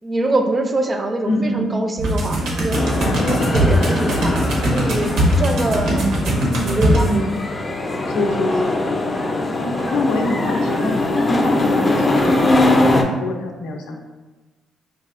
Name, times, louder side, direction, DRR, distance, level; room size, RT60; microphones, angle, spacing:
voice 1, 0.0-2.8 3.2-6.1 6.5-7.3 7.9-8.1 8.4-8.5, right 2 dB, 30° right, 5 dB, 0.4 m, -24 dB
voice 2, 1.2-1.7 3.0-3.7 5.3-6.2 7.1-7.3 8.1-8.8 9.6-14.0, left 1 dB, 85° left, 2 dB, 0.5 m, -25 dB
sound 1, 2.0-7.0, equal, 85° right, 0.7 m, -20 dB
sound 2, 2.7-13.0, left 2 dB, 30° left, 0.5 m, -21 dB
4.0 x 2.3 x 2.4 m, 1.2 s
cardioid pair, 80°, 0 cm